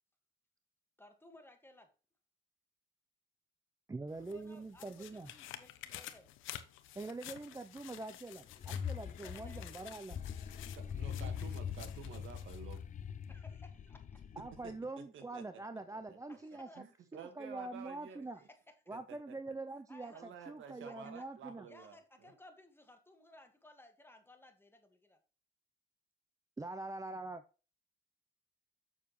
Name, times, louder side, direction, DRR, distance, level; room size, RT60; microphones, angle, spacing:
voice 1, 1.0-1.9 4.2-6.3 9.2-9.6 13.3-14.2 16.3-16.8 18.3-18.8 19.9-20.3 20.8-21.3 21.7-25.2, left 1 dB, 10° left, 1.8 m, -59 dB
voice 2, 3.9-5.3 6.9-10.2 14.4-16.8 17.1-18.4 18.9-21.7 26.6-27.4, right 2 dB, 15° right, 0.6 m, -44 dB
sound 1, 4.1-12.8 13.2-13.3, left 12 dB, 90° left, 0.8 m, -52 dB
sound 2, 8.5-14.8, left 7 dB, 40° left, 0.6 m, -43 dB
voice 3, 10.7-12.8 14.6-15.4 15.7-15.8 16.1-16.2 16.8-18.3 18.9-19.5 20.1-22.0 22.2-22.3, right 7 dB, 80° right, 1.7 m, -51 dB
7.2 x 6.7 x 3.1 m
cardioid pair, 90°, 20 cm